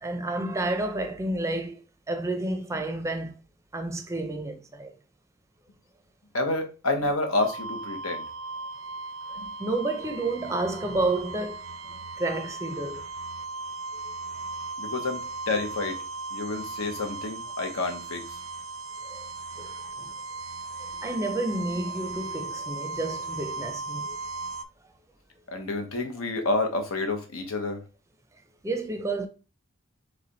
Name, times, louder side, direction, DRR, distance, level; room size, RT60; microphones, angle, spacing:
voice 1, 0.0-3.3 3.7-4.9 9.6-11.6 11.9-13.0 19.1-19.3 19.6-20.1 21.0-24.2 25.7-25.8 28.6-29.3, right 2 dB, 15° right, 0.5 m, -30 dB
voice 2, 6.3-8.2 14.8-15.2 15.5-16.0 16.3-18.2 25.5-27.8, left 2 dB, 85° left, 1.0 m, -29 dB
sound 1, 7.3-24.6, right 3 dB, 85° right, 0.4 m, -37 dB
3.3 x 3.2 x 3.9 m
head